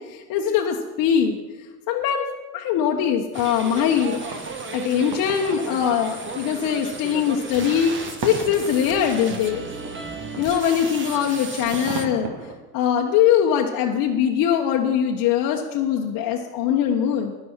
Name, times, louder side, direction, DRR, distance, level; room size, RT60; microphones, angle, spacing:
voice 1, 0.0-1.4 1.9-2.3 2.5-4.4 4.7-9.7 10.4-12.3 12.7-17.3, left 8 dB, 45° left, 0 dB, 1.2 m, -22 dB
sound 1, 3.3-12.1, right 4 dB, 25° right, 1.4 m, -35 dB
sound 2, 4.1-12.5, right 4 dB, 45° right, 2.1 m, -38 dB
12.5 x 10.0 x 4.5 m, 1.2 s
hypercardioid pair, 85°, 47 cm